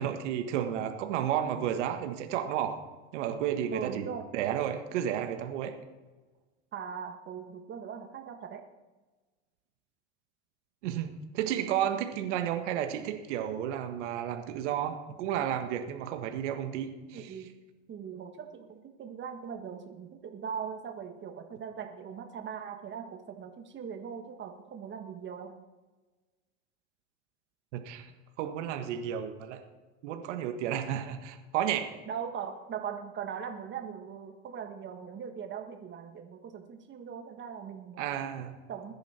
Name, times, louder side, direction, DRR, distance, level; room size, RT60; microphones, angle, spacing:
voice 1, 0.0-2.8 3.1-4.0 4.3-5.7 10.8-17.3 27.7-28.1 28.4-29.6 30.0-31.9 38.0-38.6, right 10 dB, 75° right, 6 dB, 1.7 m, -32 dB
voice 2, 3.7-4.3 6.7-8.6 17.1-17.5 17.9-25.6 32.1-38.1 38.7-38.9, right 7 dB, 30° right, 5 dB, 1.6 m, -40 dB
20.0 x 10.5 x 4.5 m, 1.2 s
supercardioid pair, 110°, 36 cm